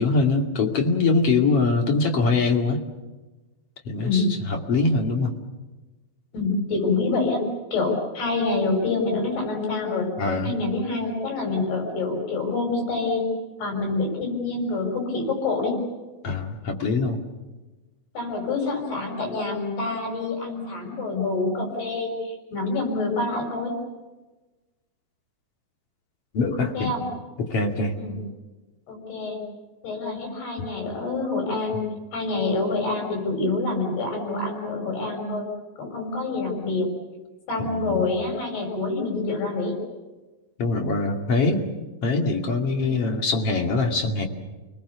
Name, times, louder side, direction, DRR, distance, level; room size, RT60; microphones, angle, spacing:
voice 1, 0.0-2.8 3.9-5.3 10.2-10.5 16.2-17.2 26.3-26.9 27.4-28.0 30.6-30.7 37.6-38.1 40.6-41.6 42.0-44.3, left 3 dB, 40° left, 2 dB, 3.0 m, -23 dB
voice 2, 6.3-10.1 10.4-13.3 13.6-15.7 18.1-23.7 26.7-27.1 28.0-28.2 28.9-29.4 29.8-31.8 32.1-35.5 35.8-36.9 37.5-39.7 42.8-43.0, left 3 dB, 90° left, 2 dB, 7.9 m, -26 dB
30.0 x 20.5 x 7.0 m, 1.2 s
omnidirectional pair, 4.4 m